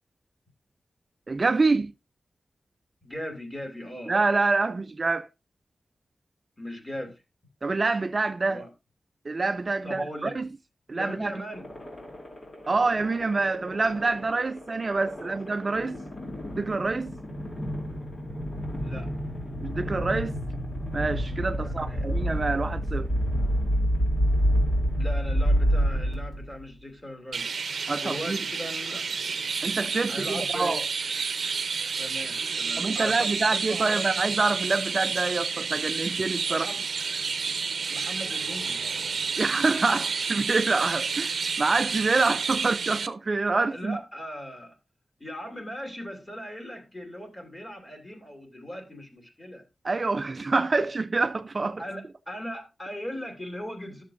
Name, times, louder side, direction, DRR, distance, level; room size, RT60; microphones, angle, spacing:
voice 1, 1.3-1.9 4.1-5.3 7.6-8.6 9.3-10.5 10.9-11.4 12.7-16.0 16.5-17.1 19.6-20.3 20.9-23.1 27.9-28.4 29.6-30.8 32.8-36.7 39.4-44.0 49.8-51.8, right 3 dB, 40° right, 0.4 m, -26 dB
voice 2, 3.0-4.1 6.6-7.2 8.4-8.7 9.8-10.4 10.9-11.7 15.2-15.3 18.8-19.1 21.6-22.1 25.0-27.5 28.0-29.0 30.1-30.8 32.0-34.1 36.5-36.8 37.9-38.8 43.7-44.7 45.2-49.6 51.8-54.0, equal, 20° left, 2.7 m, -38 dB
sound 1, 11.5-26.6, equal, 40° left, 2.8 m, -29 dB
Chirp tweet, 27.3-43.1, right 5 dB, 85° right, 0.6 m, -30 dB
13.0 x 6.7 x 2.5 m
wide cardioid pair, 130°, 0 cm